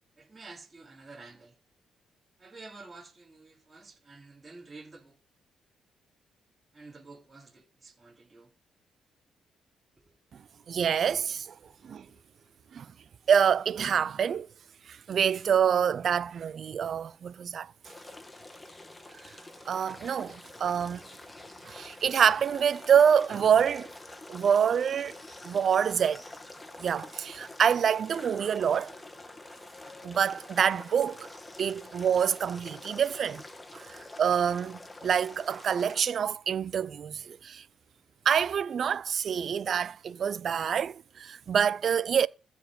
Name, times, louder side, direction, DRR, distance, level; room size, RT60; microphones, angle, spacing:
voice 1, 0.2-1.5 2.4-5.1 6.7-8.5 11.6-12.5 31.8-31.9, right 3 dB, 25° right, 4.6 m, -50 dB
voice 2, 10.7-11.5 11.8-12.1 12.7-12.9 13.3-14.5 14.9-17.7 19.7-21.0 21.6-23.9 24.3-25.2 25.4-26.2 26.8-28.9 30.0-31.3 31.6-33.4 33.7-37.6 38.3-42.3, right 8 dB, 55° right, 0.5 m, -26 dB
sound 1, 17.8-36.0, left 2 dB, 15° left, 1.7 m, -47 dB
15.0 x 5.2 x 5.2 m
cardioid pair, 90°, 0 cm